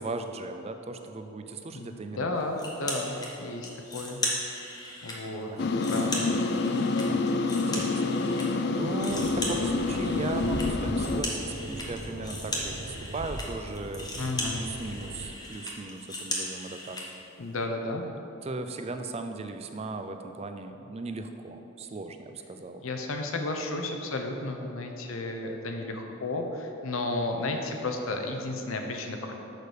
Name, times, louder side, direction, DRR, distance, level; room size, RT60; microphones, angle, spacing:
voice 1, 0.0-2.4 5.5-6.2 7.1-8.0 8.3-11.4 11.7-14.1 14.6-17.0 18.4-22.8, right 3 dB, 30° right, 7 dB, 0.4 m, -38 dB
voice 2, 1.7-4.2 5.0-6.2 14.2-14.6 17.4-18.0 22.8-29.3, left 2 dB, 70° left, 3 dB, 0.8 m, -33 dB
sound 1, 2.6-3.3 3.6-5.2 5.6-8.5 8.7-17.1, left 1 dB, 20° left, 1.0 m, -37 dB
sound 2, 5.6-11.2, left 3 dB, 50° left, 0.3 m, -27 dB
sound 3, 9.1-15.3, right 1 dB, 65° right, 0.8 m, -39 dB
6.6 x 5.0 x 6.4 m, 3.0 s
head